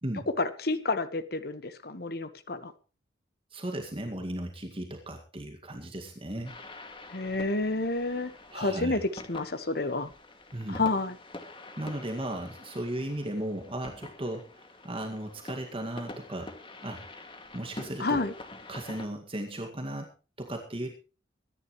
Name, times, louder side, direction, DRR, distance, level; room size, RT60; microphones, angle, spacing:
voice 1, 0.3-2.7 7.1-10.1 10.7-11.2 18.0-18.3, left 3 dB, 60° left, 12 dB, 1.4 m, -30 dB
voice 2, 3.5-6.6 8.5-9.0 10.5-10.9 11.8-16.5 16.8-17.0 17.5-18.3 18.7-20.1 20.4-20.9, right 1 dB, 30° right, 3 dB, 2.0 m, -36 dB
sound 1, 6.4-19.1, left 2 dB, 30° left, 2.2 m, -47 dB
23.5 x 11.0 x 3.2 m, 0.34 s
head